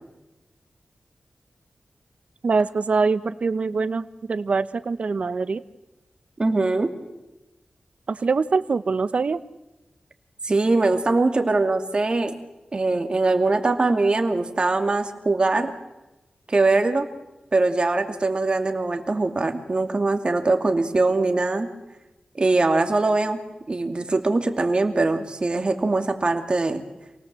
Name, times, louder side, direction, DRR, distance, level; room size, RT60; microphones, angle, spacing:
voice 1, 2.4-5.6 8.1-9.4, right 4 dB, 65° right, 13 dB, 1.0 m, -23 dB
voice 2, 6.4-6.9 10.4-12.3 12.7-15.7 16.5-17.1 17.5-21.7 22.4-23.4 23.7-26.8, right 3 dB, 45° right, 6 dB, 2.6 m, -22 dB
27.5 x 18.5 x 7.7 m, 1.0 s
wide cardioid pair, 65°, 2 cm